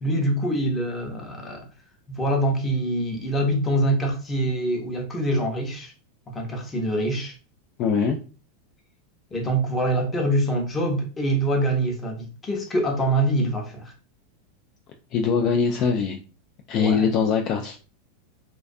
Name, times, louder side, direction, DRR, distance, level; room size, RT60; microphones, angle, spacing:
voice 1, 0.0-1.7 2.1-5.9 6.3-7.3 9.3-13.9 16.7-17.1, right 1 dB, 20° left, 0.7 m, -25 dB
voice 2, 7.8-8.2 15.1-16.2 16.7-17.8, left 6 dB, 45° left, 0.3 m, -22 dB
2.3 x 2.2 x 2.5 m
supercardioid pair, 120°, 0 cm